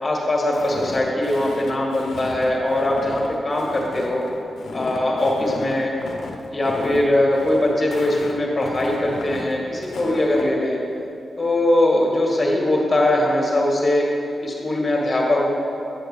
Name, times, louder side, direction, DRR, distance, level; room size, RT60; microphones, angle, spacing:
voice 1, 0.0-4.2 4.7-5.9 6.5-10.8 11.4-14.1 14.4-15.5, left 1 dB, 30° left, -2 dB, 1.7 m, -21 dB
Walk footsteps, 0.5-10.5, left 3 dB, 85° left, 0.7 m, -34 dB
9.2 x 6.4 x 3.3 m, 2.6 s
cardioid pair, 70°, 0 cm